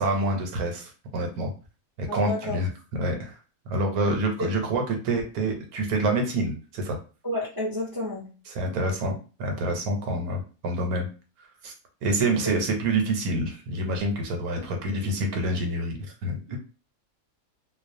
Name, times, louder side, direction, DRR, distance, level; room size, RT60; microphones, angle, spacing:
voice 1, 0.0-1.5 2.0-3.3 3.7-7.0 8.6-11.1 11.6-11.7 12.0-16.6, right 2 dB, 85° right, 3 dB, 1.1 m, -27 dB
voice 2, 2.1-2.6 4.4-4.5 7.2-8.3 12.4-12.5 16.5-16.6, left 1 dB, 30° right, -5 dB, 0.4 m, -30 dB
2.3 x 2.3 x 2.5 m, 0.35 s
omnidirectional pair, 1.5 m